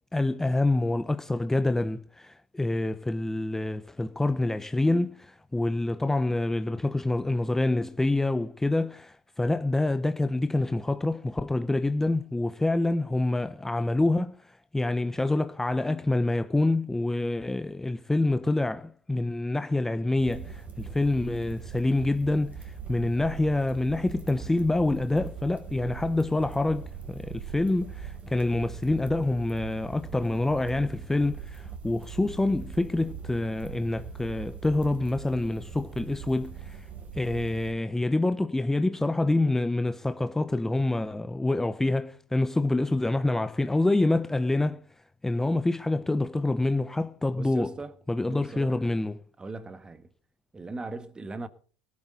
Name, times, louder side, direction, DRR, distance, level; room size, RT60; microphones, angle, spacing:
voice 1, 0.1-36.9 37.2-44.8 45.2-47.7 48.1-49.2, left 2 dB, 10° left, 0.8 m, -27 dB
sound 1, 20.2-37.7, right 7 dB, 35° right, 3.9 m, -41 dB
voice 2, 47.3-47.9 48.3-48.9 49.4-50.1 50.5-51.5, right 3 dB, 20° right, 1.6 m, -39 dB
19.0 x 12.0 x 3.9 m
hypercardioid pair, 80°, 4 cm